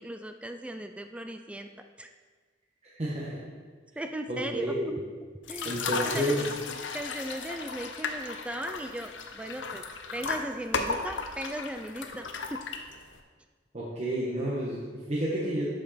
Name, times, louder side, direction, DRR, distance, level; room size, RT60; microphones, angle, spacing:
voice 1, 0.0-1.7 2.0-2.1 4.0-4.9 5.2-6.5 6.9-9.8 10.1-12.6, right 1 dB, 5° right, 6 dB, 0.3 m, -38 dB
voice 2, 2.9-3.4 4.3-5.0 5.6-6.4 13.7-15.7, right 1 dB, 35° right, -7 dB, 1.4 m, -30 dB
sound 1, 5.4-13.2, left 4 dB, 85° left, 0.8 m, -35 dB
12.0 x 5.2 x 4.3 m, 1.5 s
head